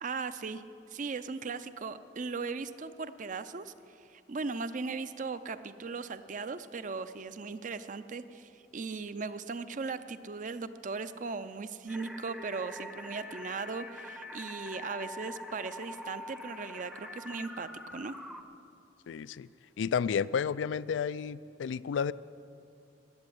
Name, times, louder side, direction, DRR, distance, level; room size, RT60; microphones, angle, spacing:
voice 1, 0.0-0.6 0.9-3.7 4.1-18.1, right 4 dB, 45° right, 12 dB, 0.5 m, -38 dB
sound 1, 11.9-18.4, left 1 dB, ahead, 0.6 m, -44 dB
voice 2, 19.1-19.5 19.8-22.1, left 7 dB, 85° left, 19 dB, 0.3 m, -31 dB
14.0 x 8.5 x 9.9 m, 2.6 s
head